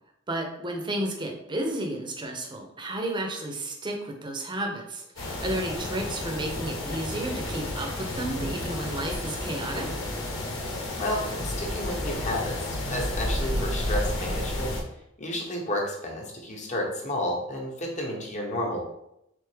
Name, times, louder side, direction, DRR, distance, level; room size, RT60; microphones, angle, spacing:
voice 1, 0.3-9.9, right 1 dB, 25° right, 2 dB, 0.7 m, -32 dB
sound 1, 5.2-14.8, left 1 dB, 75° left, 1.0 m, -31 dB
voice 2, 11.0-14.7 15.2-18.8, left 1 dB, 35° left, 0 dB, 1.0 m, -31 dB
3.6 x 3.5 x 3.4 m, 0.81 s
head